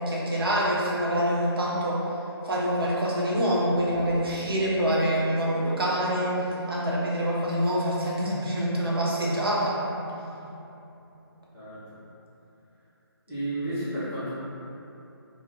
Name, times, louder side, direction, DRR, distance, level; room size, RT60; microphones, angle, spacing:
voice 1, 0.0-2.0 2.4-9.8, equal, 60° right, -6 dB, 0.7 m, -26 dB
sound 1, 3.7-11.4, right 1 dB, 25° right, 1.1 m, -39 dB
voice 2, 11.5-12.0 13.3-14.3, right 1 dB, 5° left, -20 dB, 0.3 m, -32 dB
2.3 x 2.1 x 3.7 m, 2.9 s
figure-of-eight pair, 150°, 14 cm